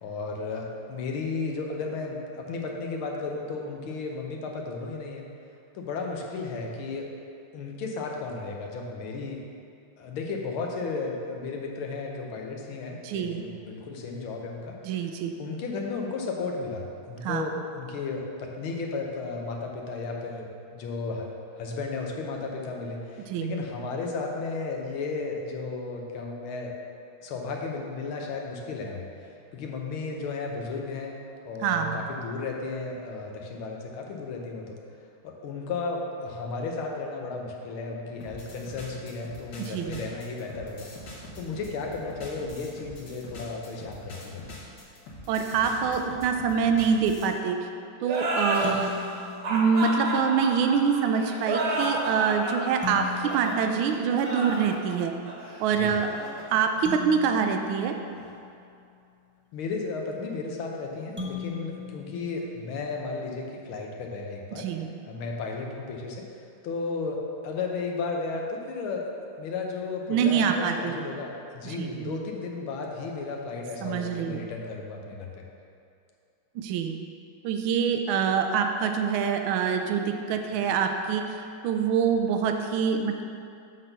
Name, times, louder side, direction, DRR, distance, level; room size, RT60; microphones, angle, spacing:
voice 1, 0.0-5.3 5.7-7.1 7.5-9.4 10.0-15.1 15.4-26.8 27.2-31.2 31.5-34.8 35.2-40.9 41.4-44.4 55.7-55.9 59.5-64.7 65.1-66.2 66.6-69.1 69.4-75.5, left 4 dB, 90° left, 1 dB, 1.8 m, -34 dB
voice 2, 13.0-13.4 14.8-15.3 17.2-17.4 23.3-23.5 31.6-32.1 39.6-40.0 45.3-47.7 48.0-48.9 49.5-55.1 55.6-56.1 56.5-57.9 64.5-64.9 70.1-71.0 71.6-72.2 73.8-74.4 76.5-77.0 77.4-83.2, right 6 dB, 85° right, 5 dB, 1.4 m, -25 dB
sound 1, 38.2-47.3, left 1 dB, 60° left, 1.9 m, -44 dB
sound 2, 48.0-57.3, right 1 dB, 55° right, 1.6 m, -31 dB
sound 3, 48.6-50.3 52.8-54.8 56.8-59.0 61.2-63.2, left 5 dB, 10° right, 0.7 m, -40 dB
7.5 x 4.0 x 6.6 m, 2.5 s
omnidirectional pair, 2.2 m